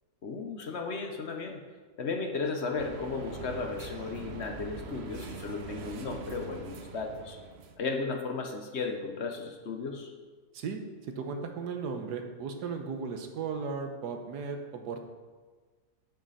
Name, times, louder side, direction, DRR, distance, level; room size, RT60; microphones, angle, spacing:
voice 1, 0.2-1.6 2.0-7.4 7.8-10.1, left 4 dB, 50° left, 3 dB, 1.0 m, -35 dB
sound 1, 2.8-7.8, right 5 dB, 50° right, 0.8 m, -43 dB
voice 2, 10.5-15.1, right 5 dB, 85° right, 5 dB, 1.5 m, -36 dB
10.5 x 6.6 x 4.1 m, 1.4 s
omnidirectional pair, 1.7 m